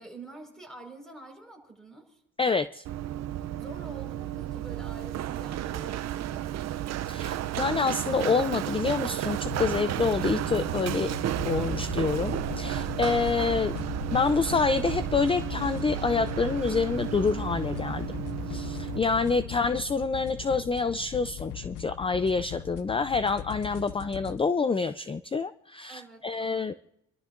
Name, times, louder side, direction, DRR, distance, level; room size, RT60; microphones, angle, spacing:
voice 1, 0.0-2.2 3.6-6.8 19.2-19.6 25.9-26.8, right 2 dB, ahead, 3 dB, 4.8 m, -47 dB
voice 2, 2.4-2.8 7.1-11.1 11.4-13.7 14.1-18.1 18.5-26.7, left 4 dB, 20° left, 13 dB, 0.4 m, -27 dB
Run, 2.9-19.0, right 12 dB, 60° right, 0.6 m, -32 dB
sound 1, 9.5-24.4, left 12 dB, 85° left, 0.6 m, -39 dB
29.0 x 12.5 x 2.6 m, 0.82 s
cardioid pair, 90°, 30 cm